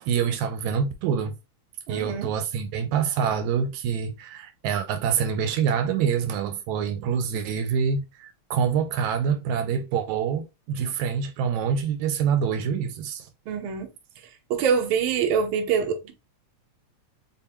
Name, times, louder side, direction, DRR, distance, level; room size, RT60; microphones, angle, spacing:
voice 1, 0.0-1.3 1.9-13.3, right 7 dB, 85° right, 2.0 m, -26 dB
voice 2, 1.9-2.3 13.5-13.9 14.5-16.1, right 6 dB, 65° right, 1.3 m, -24 dB
4.3 x 3.8 x 2.8 m
omnidirectional pair, 3.3 m